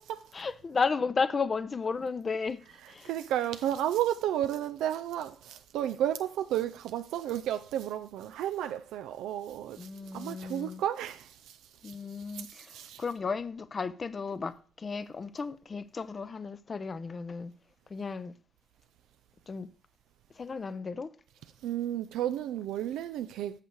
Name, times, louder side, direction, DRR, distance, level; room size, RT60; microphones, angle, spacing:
voice 1, 0.3-2.6 2.9-3.1 9.8-10.8 11.8-17.5 17.9-18.3 19.5-19.7 20.4-21.1, left 5 dB, 35° left, 0.6 m, -34 dB
voice 2, 2.8-13.0 21.6-23.6, right 11 dB, 90° right, 0.3 m, -33 dB
8.1 x 6.3 x 4.6 m
cardioid pair, 90°, 0 cm